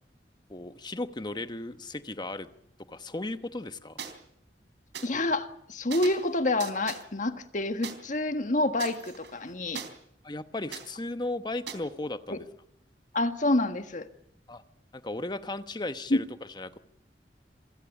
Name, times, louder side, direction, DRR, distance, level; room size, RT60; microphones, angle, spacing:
voice 1, 0.5-2.5 2.9-4.0 10.2-12.5 14.5-14.6 14.9-16.2 16.5-16.8, left 2 dB, 25° left, 11 dB, 1.0 m, -35 dB
sound 1, 4.0-4.1 4.9-5.1 5.9-6.3 6.6-7.0 7.8-7.9 8.8-9.9 10.7-10.9 11.7-11.8, right 7 dB, 85° right, 3.4 m, -39 dB
voice 2, 5.0-9.8 12.3-12.4 13.1-14.1 16.1-16.2, left 2 dB, 45° left, 8 dB, 1.5 m, -28 dB
27.0 x 16.0 x 8.2 m, 0.74 s
head